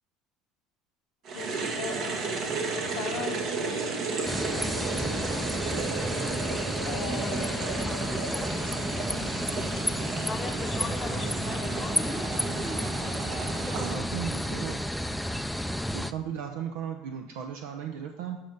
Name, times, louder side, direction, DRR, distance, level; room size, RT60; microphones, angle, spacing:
sound 1, 1.2-13.9, right 4 dB, 55° right, 1.3 m, -33 dB
voice 1, 1.3-3.8 6.9-7.7, left 6 dB, 75° left, 1 dB, 0.8 m, -40 dB
sound 2, 4.2-16.1, equal, ahead, 0.4 m, -31 dB
voice 2, 6.1-6.6 7.1-8.5 10.3-12.3, left 6 dB, 35° left, 10 dB, 0.9 m, -41 dB
voice 3, 13.7-14.8 15.9-18.4, right 8 dB, 75° right, 5 dB, 0.6 m, -36 dB
8.9 x 5.6 x 5.2 m, 1.0 s
hypercardioid pair, 80°, 0 cm